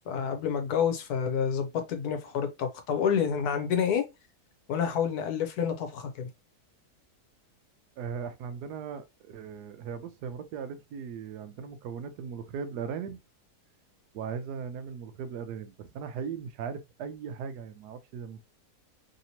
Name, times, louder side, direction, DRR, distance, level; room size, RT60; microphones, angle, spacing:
voice 1, 0.1-4.0 4.7-6.3, left 7 dB, 75° left, 1.2 m, -28 dB
voice 2, 8.0-13.2 14.1-18.5, right 6 dB, 85° right, 1.2 m, -38 dB
3.3 x 2.9 x 2.7 m
omnidirectional pair, 1.7 m